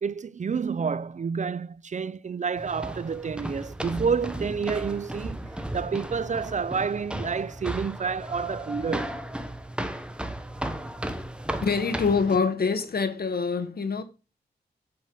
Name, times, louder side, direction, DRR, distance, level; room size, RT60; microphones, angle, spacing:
voice 1, 0.0-5.4 5.7-9.2, right 6 dB, 45° right, 0.4 m, -29 dB
sound 1, 2.6-12.4, right 1 dB, 5° right, 1.1 m, -35 dB
voice 2, 11.6-14.0, left 5 dB, 60° left, 1.3 m, -25 dB
8.5 x 5.4 x 7.6 m
wide cardioid pair, 100°, 18 cm